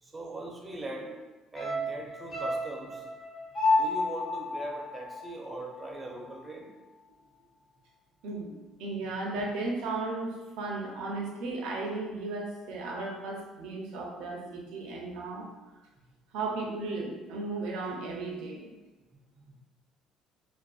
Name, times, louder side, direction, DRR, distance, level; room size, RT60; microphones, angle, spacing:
voice 1, 0.0-1.1 1.5-3.1 3.7-6.7 19.4-19.5, right 2 dB, 15° right, 0 dB, 0.4 m, -40 dB
sound 1, 1.6-6.0 6.2-6.3, left 2 dB, 40° left, 0.7 m, -31 dB
voice 2, 8.2-15.5 16.3-18.7, right 3 dB, 80° right, -1 dB, 0.4 m, -35 dB
2.4 x 2.2 x 2.3 m, 1.2 s
cardioid pair, 130°, 0 cm